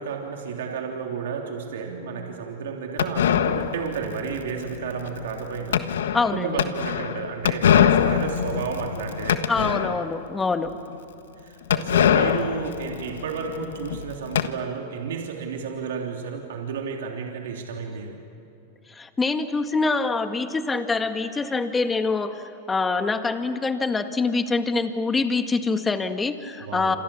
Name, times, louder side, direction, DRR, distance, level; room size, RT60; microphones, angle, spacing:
voice 1, 0.0-5.9 6.3-9.7 11.4-18.2 26.6-27.0, right 6 dB, 80° right, 1 dB, 3.2 m, -32 dB
sound 1, 3.0-10.3 10.6-10.7 10.9-11.0 11.7-14.5, left 9 dB, 85° left, 1.4 m, -23 dB
voice 2, 6.1-6.6 9.5-10.7 18.9-27.0, left 3 dB, 15° left, 7 dB, 1.9 m, -25 dB
28.0 x 27.0 x 7.3 m, 2.8 s
hypercardioid pair, 115°, 0 cm